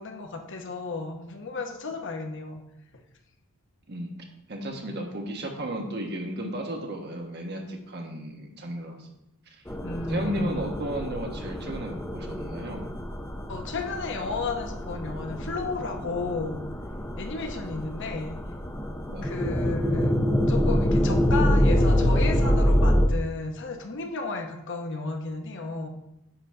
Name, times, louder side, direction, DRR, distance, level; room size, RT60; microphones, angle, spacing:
voice 1, 0.0-2.6 9.8-10.6 13.5-16.6 17.2-18.4 19.2-20.1 20.5-25.9, left 3 dB, 55° left, 4 dB, 1.0 m, -33 dB
voice 2, 4.5-9.0 10.1-12.9 19.1-19.3, right 1 dB, 50° right, 2 dB, 1.4 m, -34 dB
sound 1, 9.7-23.1, equal, 10° left, 0.6 m, -26 dB
9.6 x 4.0 x 5.7 m, 0.84 s
head